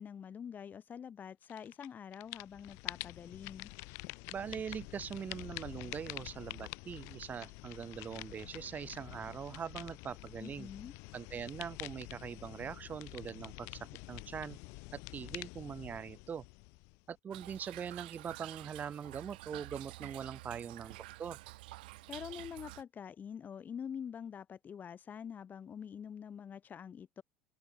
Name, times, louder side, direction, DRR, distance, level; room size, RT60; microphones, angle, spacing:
voice 1, 0.0-3.7 10.4-10.9 22.1-27.2, left 7 dB, 35° left, 5.4 m, -46 dB
sound 1, 1.5-1.9 2.1-17.1, left 29 dB, 60° left, 3.5 m, -47 dB
voice 2, 4.3-10.7 11.1-14.6 14.9-16.4 17.1-21.4, right 7 dB, 35° right, 5.8 m, -42 dB
Toilet flush / Trickle dribble, 17.3-22.8, right 19 dB, 70° right, 7.3 m, -49 dB
open air
hypercardioid pair, 70°, 5 cm